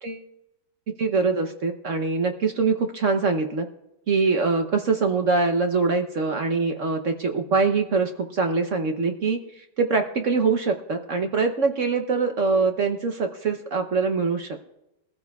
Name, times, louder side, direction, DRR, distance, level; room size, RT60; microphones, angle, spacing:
voice 1, 1.0-3.7 4.1-14.6, right 4 dB, 55° right, 5 dB, 1.0 m, -23 dB
22.0 x 15.0 x 2.3 m, 0.89 s
omnidirectional pair, 1.8 m